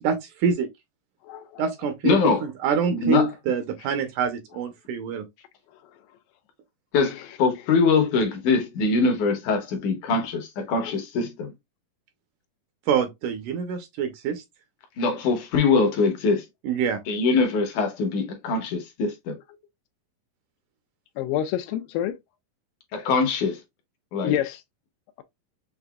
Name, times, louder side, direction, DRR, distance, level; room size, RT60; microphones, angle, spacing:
voice 1, 0.0-0.7 1.6-5.3 12.9-14.4 16.6-17.0, right 6 dB, 75° right, 2.0 m, -26 dB
voice 2, 1.2-1.6 21.2-22.2 24.2-24.6, left 11 dB, 85° left, 2.3 m, -27 dB
voice 3, 2.0-2.4 2.9-3.3 6.9-11.5 15.0-16.5 17.1-19.4 22.9-23.6 24.1-24.4, left 4 dB, 70° left, 2.3 m, -23 dB
6.7 x 2.5 x 2.3 m
omnidirectional pair, 4.0 m